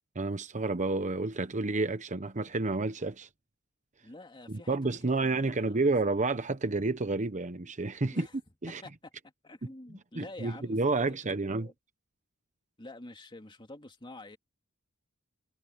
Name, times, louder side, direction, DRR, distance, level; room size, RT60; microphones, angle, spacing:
voice 1, 0.1-3.3 4.5-8.3 8.6-8.8 9.9-11.7, right 3 dB, 35° right, 1.0 m, -30 dB
voice 2, 4.0-4.8 5.0-5.8 8.1-8.3 8.7-8.9 9.4-11.0 11.3-11.7 12.8-14.4, left 2 dB, 25° left, 2.4 m, -48 dB
head